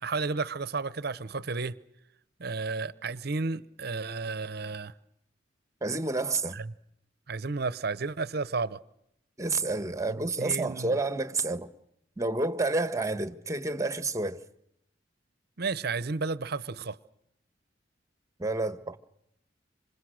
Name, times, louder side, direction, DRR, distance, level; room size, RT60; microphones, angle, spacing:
voice 1, 0.0-1.8 2.4-4.9 6.5-6.7 7.3-8.8 10.1-11.0 15.6-17.0, right 4 dB, 60° right, 0.9 m, -32 dB
voice 2, 5.8-6.6 9.4-11.7 12.2-14.4 18.4-19.0, right 3 dB, 15° right, 1.3 m, -29 dB
27.0 x 26.5 x 6.5 m
head